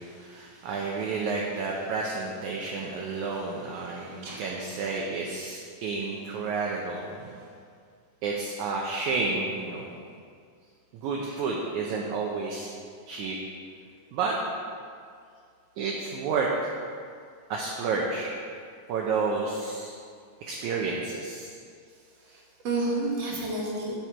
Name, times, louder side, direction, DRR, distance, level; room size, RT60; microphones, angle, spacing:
voice 1, 0.0-7.4 8.2-10.0 10.9-12.7 13.1-13.4 14.1-14.4 15.8-16.7 17.5-18.3 18.9-20.0 20.4-21.6, right 4 dB, 75° right, -1 dB, 1.9 m, -30 dB
voice 2, 22.3-23.9, right 2 dB, 55° right, -3 dB, 2.3 m, -30 dB
9.4 x 7.4 x 4.5 m, 2.2 s
omnidirectional pair, 3.9 m